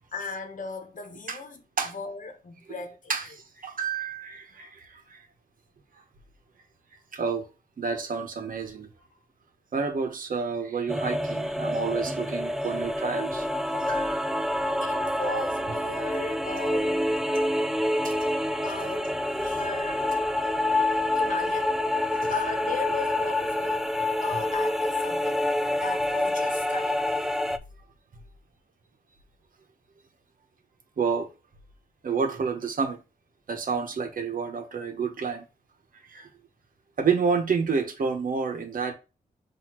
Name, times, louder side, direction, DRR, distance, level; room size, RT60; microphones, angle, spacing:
voice 1, 0.1-3.1 14.8-17.2 18.6-20.2 21.1-21.8 22.0-23.9 24.2-25.5 25.7-27.0, left 4 dB, 55° left, 1.1 m, -37 dB
voice 2, 3.1-5.2 7.1-7.5 7.8-8.9 9.7-13.5 13.7-14.3 17.3-17.6 18.0-18.1 22.1-22.3 31.0-31.3 32.0-33.0 33.5-35.4 36.1-36.3 37.0-38.9, right 5 dB, 60° right, 1.0 m, -29 dB
sound 1, 10.9-27.6, left 1 dB, 5° right, 0.4 m, -27 dB
5.7 x 2.7 x 3.0 m
cardioid pair, 65°, 16 cm